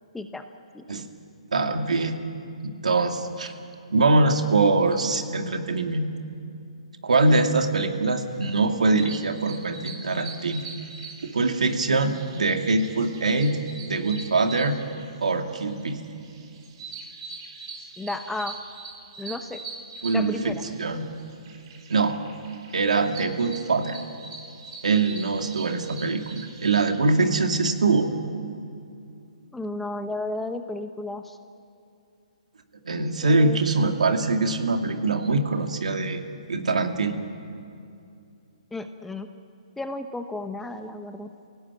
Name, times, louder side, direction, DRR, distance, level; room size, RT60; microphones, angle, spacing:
voice 1, 1.5-2.2 2.6-3.5 3.9-6.1 7.0-10.6 11.2-13.6 13.9-14.8 15.2-16.0 20.0-21.1 21.9-22.2 22.7-24.0 24.8-28.1 32.9-36.2 36.5-37.1, right 3 dB, 85° right, 5 dB, 2.4 m, -23 dB
sound 1, 8.3-27.0, right 4 dB, 45° right, 3.5 m, -43 dB
voice 2, 18.0-18.6 19.2-19.6 20.1-20.6 29.5-31.4 33.2-33.6 38.7-39.3 39.8-41.3, left 2 dB, 5° left, 7 dB, 0.9 m, -33 dB
27.5 x 17.5 x 9.1 m, 2.5 s
hypercardioid pair, 155°, 4 cm